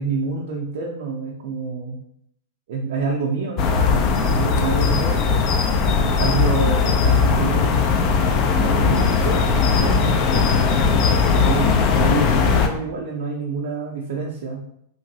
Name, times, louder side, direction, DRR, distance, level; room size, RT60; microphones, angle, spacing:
voice 1, 0.0-2.0 2.7-5.3 5.8-11.0 11.4-14.6, right 4 dB, 65° right, -2 dB, 0.5 m, -28 dB
sound 1, 3.6-12.7, left 5 dB, 40° left, 0.4 m, -18 dB
3.0 x 2.5 x 2.7 m, 0.74 s
hypercardioid pair, 95°, 0 cm